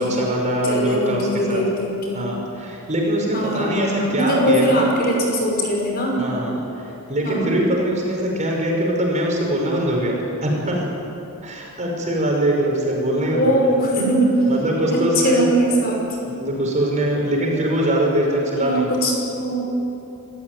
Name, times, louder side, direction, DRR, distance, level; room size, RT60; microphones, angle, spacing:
voice 1, 0.0-1.6 2.1-4.8 6.2-6.6 6.8-10.8 11.4-13.5 14.5-15.4 16.3-18.9, right 1 dB, 35° right, -1 dB, 5.7 m, -22 dB
voice 2, 0.5-2.2 3.3-6.2 7.2-7.5 13.3-14.4 14.9-16.1 18.6-19.7, right 1 dB, 45° left, -1 dB, 5.7 m, -21 dB
26.0 x 15.5 x 9.4 m, 2.8 s
head